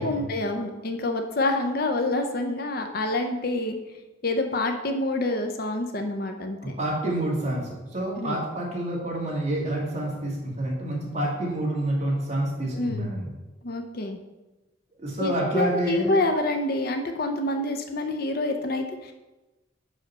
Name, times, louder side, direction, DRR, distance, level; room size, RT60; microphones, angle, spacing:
voice 1, 0.0-3.8 4.2-6.7 8.2-8.4 12.7-13.1 13.6-14.2 15.2-19.1, left 2 dB, 50° left, 5 dB, 0.6 m, -27 dB
voice 2, 6.6-13.3 15.0-16.1, right 1 dB, 35° right, -3 dB, 1.7 m, -28 dB
5.7 x 5.0 x 5.4 m, 1.1 s
head